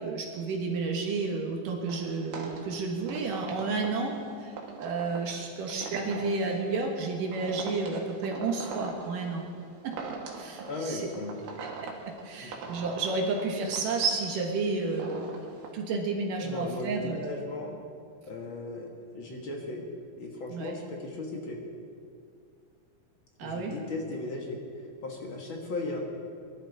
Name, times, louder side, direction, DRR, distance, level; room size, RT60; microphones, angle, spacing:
voice 1, 0.0-4.1 4.4-9.4 9.8-10.0 10.3-11.1 11.6-15.3 15.7-17.4 20.5-20.8 23.4-23.8, right 3 dB, 65° right, 1 dB, 2.8 m, -31 dB
sound 1, 1.9-15.7, right 4 dB, 85° right, 3.5 m, -42 dB
voice 2, 10.7-11.4 12.4-12.5 16.4-17.7 18.3-19.8 20.2-21.6 23.4-24.6 25.0-26.0, left 2 dB, 55° left, 0 dB, 1.5 m, -36 dB
23.0 x 12.0 x 4.0 m, 2.3 s
omnidirectional pair, 4.3 m